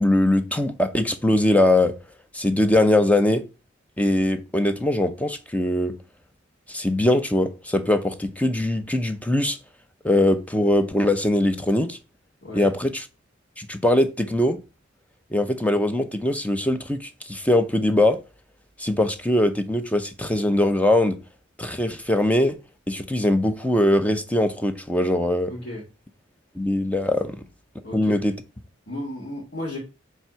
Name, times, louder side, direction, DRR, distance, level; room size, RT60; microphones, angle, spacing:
voice 1, 0.0-1.9 2.3-3.4 4.0-5.9 6.7-9.6 10.0-12.0 12.5-13.0 13.6-14.6 15.3-18.2 18.8-21.2 21.6-22.6 22.9-25.5 26.6-27.4 27.9-28.3, left 1 dB, 5° left, 0.6 m, -21 dB
voice 2, 12.4-12.7 25.5-25.8 27.8-28.3 28.9-29.8, left 1 dB, 55° left, 2.2 m, -34 dB
7.4 x 3.4 x 5.6 m
head